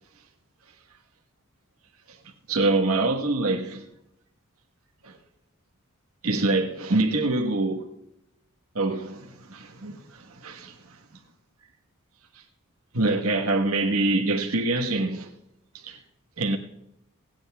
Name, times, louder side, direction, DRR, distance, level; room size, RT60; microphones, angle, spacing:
voice 1, 2.5-3.8 5.0-5.2 6.2-7.9 8.7-10.7 12.9-15.3 15.7-16.0 16.4-16.6, right 2 dB, 80° right, 1.4 m, -25 dB
28.5 x 9.7 x 2.3 m
head